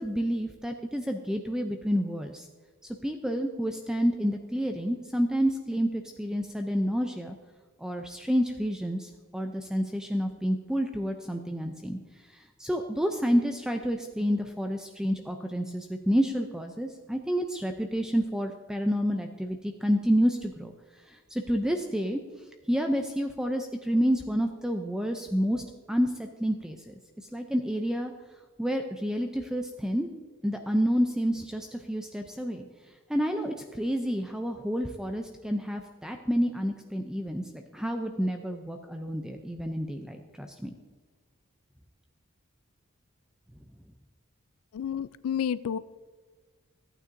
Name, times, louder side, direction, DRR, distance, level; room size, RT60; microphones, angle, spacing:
voice 1, 0.0-2.5 3.0-7.4 7.8-12.0 12.3-20.7 21.1-22.2 22.7-26.9 27.3-28.1 28.6-30.1 30.4-32.6 33.1-40.8, equal, 5° right, 4 dB, 0.4 m, -29 dB
voice 2, 44.7-45.8, left 8 dB, 80° left, 16 dB, 0.3 m, -30 dB
14.5 x 9.0 x 2.6 m, 1.5 s
head